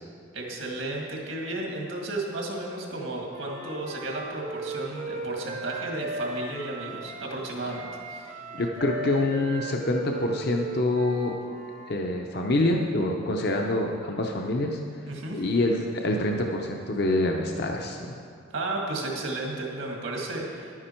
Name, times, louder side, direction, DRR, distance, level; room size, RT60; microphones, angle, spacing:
voice 1, 0.3-7.8 8.1-8.4 15.1-15.4 18.5-20.8, right 2 dB, 75° right, 0 dB, 2.0 m, -33 dB
Wind instrument woodwind instrument, 3.3-7.3 7.7-11.9, right 2 dB, 35° right, 0.7 m, -37 dB
voice 2, 8.5-11.3 11.9-18.2, left 2 dB, 55° left, 1 dB, 0.6 m, -26 dB
11.0 x 9.6 x 4.4 m, 2.3 s
head